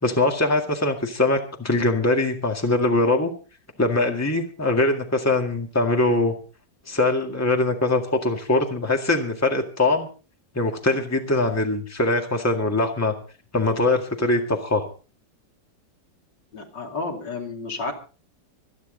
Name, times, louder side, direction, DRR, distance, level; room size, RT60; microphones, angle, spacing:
voice 1, 0.0-3.3 3.8-6.3 6.9-10.1 10.5-13.1 13.5-14.9, left 2 dB, 10° left, 3 dB, 1.9 m, -22 dB
voice 2, 16.5-17.9, left 3 dB, 80° left, 2 dB, 3.4 m, -31 dB
25.0 x 9.7 x 3.9 m, 0.36 s
omnidirectional pair, 1.9 m